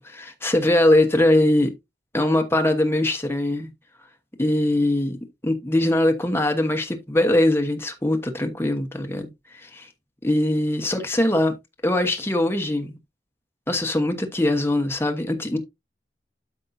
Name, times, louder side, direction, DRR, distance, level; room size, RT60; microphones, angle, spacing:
voice 1, 0.0-1.7 2.1-3.7 4.4-5.2 5.4-9.9 10.2-11.5 11.8-12.9 13.7-15.6, left 1 dB, 15° left, 1.1 m, -21 dB
12.0 x 5.3 x 2.6 m
head